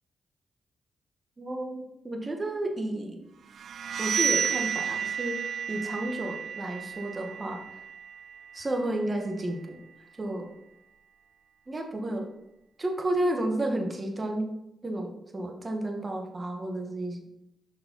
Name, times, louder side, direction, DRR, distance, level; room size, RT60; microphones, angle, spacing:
voice 1, 1.4-3.2 4.0-7.6 8.5-9.8 10.2-10.5 11.7-12.3 12.8-14.5 14.8-17.2, right 1 dB, 35° right, 3 dB, 1.6 m, -32 dB
sound 1, 3.5-9.2, right 7 dB, 70° right, 0.4 m, -32 dB
6.9 x 5.5 x 4.1 m, 0.86 s
supercardioid pair, 55°, 0 cm